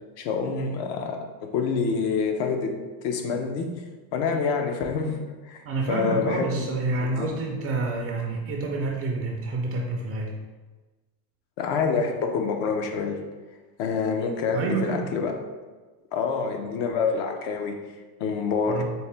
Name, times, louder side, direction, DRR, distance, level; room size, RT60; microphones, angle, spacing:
voice 1, 0.2-1.2 1.5-2.7 3.0-3.7 4.1-5.2 5.4-6.9 7.1-7.3 11.6-13.2 13.8-15.3 16.1-17.8 18.2-18.8, left 5 dB, 60° left, 3 dB, 0.7 m, -27 dB
voice 2, 5.7-10.3 14.5-15.1 18.7-18.8, right 3 dB, 30° right, 0 dB, 0.4 m, -28 dB
4.2 x 2.1 x 3.3 m, 1.2 s
supercardioid pair, 115°, 48 cm